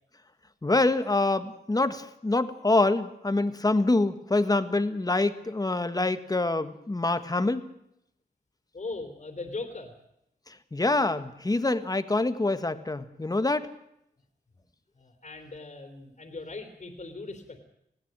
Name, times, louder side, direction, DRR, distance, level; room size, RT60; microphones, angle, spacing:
voice 1, 0.6-7.6 10.7-13.7, left 2 dB, 20° left, 11 dB, 1.5 m, -25 dB
voice 2, 8.7-9.9 14.5-14.6 14.9-17.6, left 3 dB, 45° left, 4 dB, 3.4 m, -39 dB
20.0 x 16.0 x 8.9 m, 0.79 s
cardioid pair, 75°, 17 cm